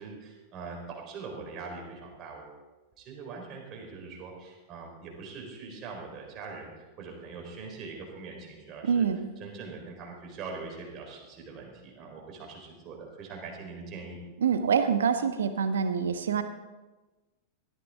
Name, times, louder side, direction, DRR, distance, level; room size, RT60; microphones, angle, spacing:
voice 1, 0.0-2.6 3.0-6.7 7.0-9.1 9.4-14.2, right 4 dB, 35° right, 0 dB, 4.1 m, -42 dB
voice 2, 8.8-9.3 14.4-16.4, right 7 dB, 65° right, 10 dB, 1.1 m, -26 dB
17.0 x 13.5 x 3.7 m, 1.2 s
figure-of-eight pair, 90°, 0 cm